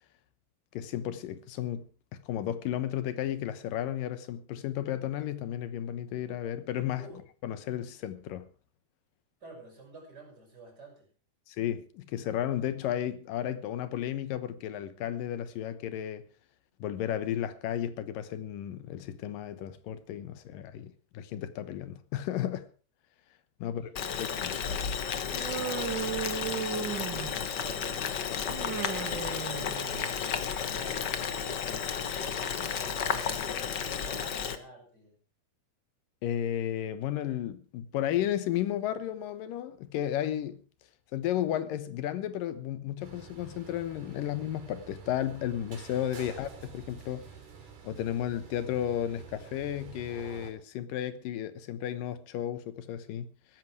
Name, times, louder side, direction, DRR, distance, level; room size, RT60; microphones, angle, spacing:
voice 1, 0.7-1.9 2.3-7.1 7.4-8.5 11.5-16.3 16.8-22.7 23.6-24.6 36.2-40.6 41.1-47.2 47.8-53.3, left 11 dB, 90° left, 2.8 m, -33 dB
voice 2, 9.4-11.1 23.6-24.1 26.4-28.8 30.1-35.2, right 2 dB, 30° right, 6.6 m, -51 dB
Boiling, 23.9-34.6, left 7 dB, 65° left, 1.0 m, -33 dB
Human voice, 25.3-27.6 28.5-30.3, right 8 dB, 45° right, 1.7 m, -36 dB
sound 1, 43.0-50.5, right 6 dB, 70° right, 5.0 m, -49 dB
15.5 x 13.5 x 4.7 m
omnidirectional pair, 3.8 m